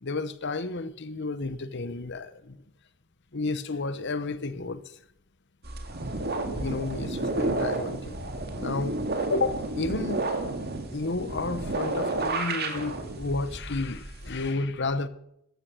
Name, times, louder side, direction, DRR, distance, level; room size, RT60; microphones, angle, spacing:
voice 1, 0.0-2.6 3.3-4.8 6.2-8.9 9.3-10.3 10.9-15.1, left 3 dB, 55° left, 1.0 m, -32 dB
sound 1, 5.6-14.5, right 2 dB, 45° right, 2.2 m, -31 dB
14.0 x 13.5 x 6.3 m
head